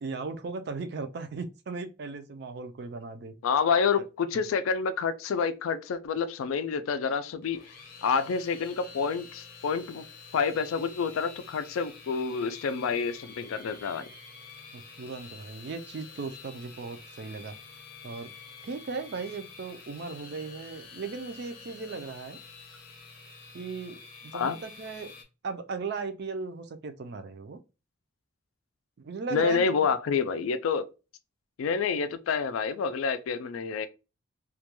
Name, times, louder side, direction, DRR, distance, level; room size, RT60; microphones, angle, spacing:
voice 1, 0.0-3.3 4.0-4.1 14.7-17.5 18.0-18.3 18.6-22.4 23.5-24.0 24.2-25.1 25.4-27.6 29.0-29.9, right 4 dB, 55° right, 0.3 m, -37 dB
voice 2, 3.4-7.6 8.0-10.1 10.3-14.1 24.3-24.6 29.3-30.9 31.6-33.9, left 5 dB, 85° left, 0.4 m, -28 dB
sound 1, 7.4-25.2, left 5 dB, 45° left, 0.6 m, -48 dB
2.3 x 2.2 x 2.9 m
head